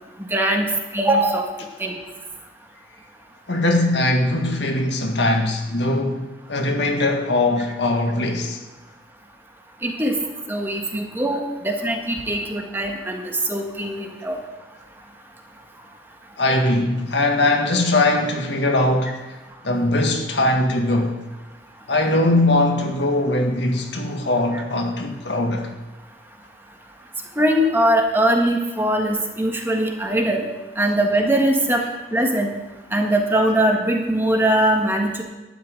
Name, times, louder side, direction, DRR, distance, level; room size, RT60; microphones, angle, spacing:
voice 1, 0.3-1.4 1.8-2.0 9.8-10.1 10.5-13.2 13.5-14.4 27.4-30.4 30.8-31.8 32.1-32.5 32.9-35.2, right 1 dB, 10° right, 1.6 m, -21 dB
voice 2, 3.5-8.6 16.4-19.2 19.6-21.2 21.9-25.7, left 2 dB, 85° left, 1.9 m, -21 dB
12.0 x 5.8 x 8.9 m
head